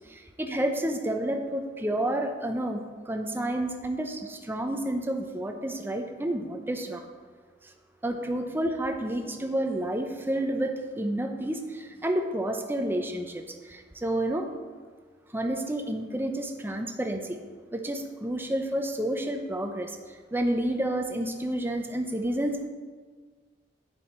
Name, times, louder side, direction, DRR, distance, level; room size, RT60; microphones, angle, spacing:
voice 1, 0.1-7.0 7.6-7.7 8.0-14.5 15.3-17.4 17.7-22.7, right 1 dB, 10° right, 4 dB, 0.8 m, -30 dB
9.4 x 7.5 x 4.5 m, 1.5 s
head